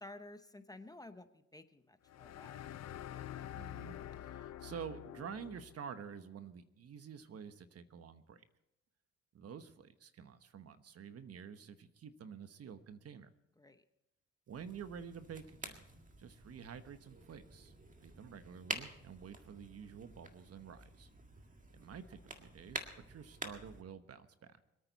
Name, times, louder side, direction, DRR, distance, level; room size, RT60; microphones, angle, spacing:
voice 1, 0.0-2.7 13.6-13.8, left 2 dB, 10° left, 9 dB, 0.9 m, -53 dB
sound 1, 2.1-5.8, left 11 dB, 60° left, 0.8 m, -47 dB
voice 2, 3.5-8.4 9.3-13.3 14.5-15.8 16.2-17.7 18.0-21.1 21.7-24.6, right 7 dB, 55° right, 11 dB, 1.1 m, -49 dB
sound 2, 14.5-23.8, right 3 dB, 25° right, 1.9 m, -49 dB
25.5 x 9.2 x 4.1 m, 0.90 s
cardioid pair, 90°, 30 cm